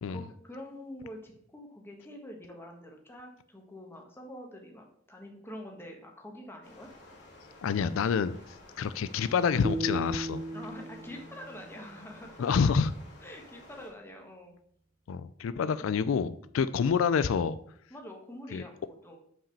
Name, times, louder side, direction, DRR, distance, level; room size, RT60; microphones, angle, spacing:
voice 1, 0.1-6.9 10.5-12.5 13.2-14.5 17.9-19.2, left 1 dB, 10° left, 2 dB, 1.5 m, -46 dB
Stream, 6.6-13.9, left 1 dB, 60° left, 2.4 m, -53 dB
voice 2, 7.6-10.4 12.4-12.9 15.1-17.6 18.5-18.6, left 6 dB, 85° left, 14 dB, 0.4 m, -28 dB
sound 1, 9.6-12.8, right 1 dB, 40° right, 0.6 m, -37 dB
6.0 x 4.9 x 6.7 m, 0.65 s
head